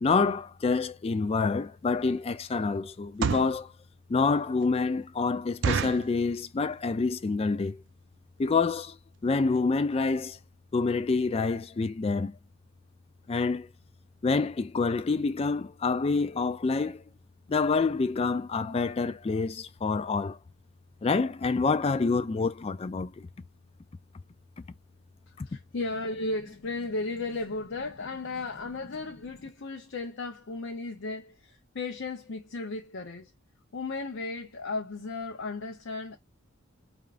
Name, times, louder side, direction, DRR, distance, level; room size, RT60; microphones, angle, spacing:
voice 1, 0.0-3.7 4.1-7.8 8.4-9.0 9.2-10.4 10.7-12.3 13.3-13.7 14.2-17.0 17.5-20.4 21.0-23.3 25.4-25.5, left 4 dB, 30° left, 0.3 m, -27 dB
sound 1, 1.4-1.5 2.0-2.3 3.0-3.6 4.2-4.3 4.6-4.7 5.0-5.1 5.6-6.1 6.7-7.0 7.3-7.4 7.6-7.9 8.4-8.5 8.7-8.9 9.3-9.4 9.6-9.7, right 6 dB, 60° right, 0.5 m, -30 dB
voice 2, 25.3-33.3 33.7-36.2, left 3 dB, 65° left, 0.6 m, -35 dB
4.8 x 3.5 x 2.4 m
head